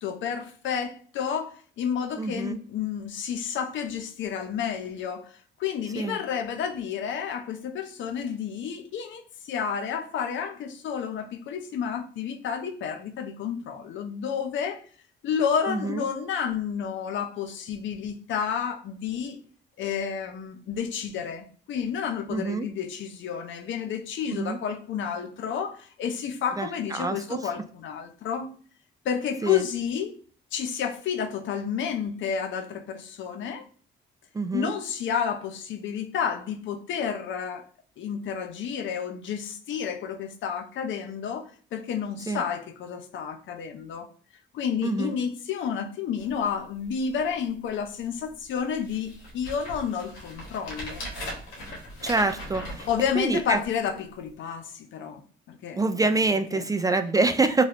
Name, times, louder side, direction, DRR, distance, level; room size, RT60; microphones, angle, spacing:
voice 1, 0.0-14.8 15.2-19.4 19.8-28.5 29.0-30.2 30.5-33.6 34.5-37.7 38.0-44.1 44.5-51.0 52.9-55.2 55.5-55.9 56.5-57.0, left 7 dB, 70° left, 0.6 m, -30 dB
voice 2, 2.2-2.6 6.0-6.2 15.7-16.0 22.3-22.7 24.3-24.6 26.6-27.4 29.4-29.6 34.3-34.7 42.3-42.4 44.8-45.1 52.0-52.9 53.2-53.6 55.8-57.6, right 3 dB, 20° right, 0.3 m, -26 dB
sound 1, 46.2-46.3 46.8-46.9 47.2-47.7 48.3-48.4 48.8-53.7 54.3-54.4, equal, 90° left, 1.6 m, -39 dB
3.0 x 3.0 x 2.7 m
cardioid pair, 90°, 20 cm